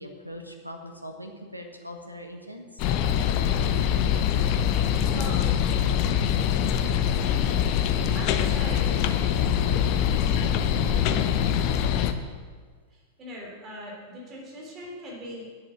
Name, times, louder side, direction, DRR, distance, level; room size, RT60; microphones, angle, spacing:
voice 1, 0.0-2.8, equal, 90° right, 4 dB, 1.3 m, -41 dB
sound 1, 2.8-12.1, left 9 dB, 45° left, 0.7 m, -24 dB
voice 2, 5.1-5.5 8.1-9.1 12.9-15.4, equal, 30° right, -3 dB, 3.5 m, -40 dB
9.4 x 7.8 x 7.4 m, 1.5 s
figure-of-eight pair, 90°, 0 cm